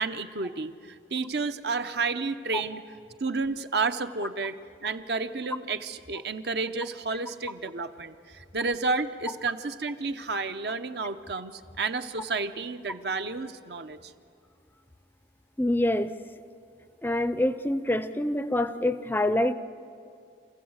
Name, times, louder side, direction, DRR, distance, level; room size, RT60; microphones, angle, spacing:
voice 1, 0.0-2.8 3.2-14.1, right 4 dB, 60° right, 9 dB, 0.9 m, -31 dB
voice 2, 15.6-16.1 17.0-19.5, left 1 dB, 10° left, 12 dB, 0.5 m, -26 dB
28.0 x 15.0 x 8.0 m, 2.5 s
head